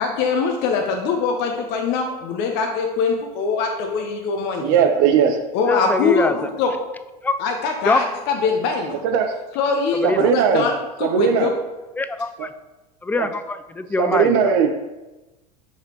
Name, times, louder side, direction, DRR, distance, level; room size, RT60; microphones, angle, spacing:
voice 1, 0.0-4.7 5.5-6.7 7.4-9.0 9.6-11.5, left 4 dB, 55° left, 2 dB, 0.9 m, -22 dB
voice 2, 4.6-5.4 9.0-9.4 10.0-10.7 11.0-11.5 12.4-12.5 13.2-13.3 14.0-14.7, right 7 dB, 55° right, 6 dB, 0.6 m, -18 dB
voice 3, 5.7-6.3 7.2-7.4 7.8-8.0 10.0-10.3 12.0-12.5 13.0-14.5, left 3 dB, 10° left, 11 dB, 0.3 m, -23 dB
6.6 x 4.9 x 2.9 m, 1.1 s
hypercardioid pair, 75°, 21 cm